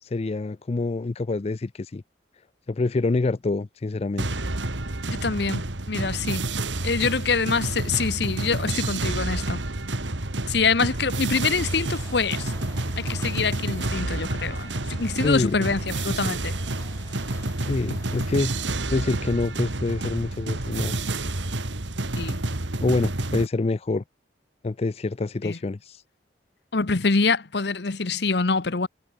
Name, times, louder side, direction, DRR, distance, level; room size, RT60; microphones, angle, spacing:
voice 1, 0.0-2.0 2.7-4.4 15.2-15.7 17.6-18.5 18.9-21.1 22.8-24.0 24.6-26.0, left 3 dB, 35° left, 0.4 m, -26 dB
sound 1, 4.2-23.5, right 2 dB, 90° right, 2.4 m, -29 dB
voice 2, 5.1-6.4 6.8-9.6 10.5-12.5 13.0-16.5 22.2-22.4 25.4-25.6 26.7-28.9, left 4 dB, 65° left, 1.0 m, -25 dB
sound 2, 11.3-18.7, left 3 dB, 15° left, 2.2 m, -48 dB
head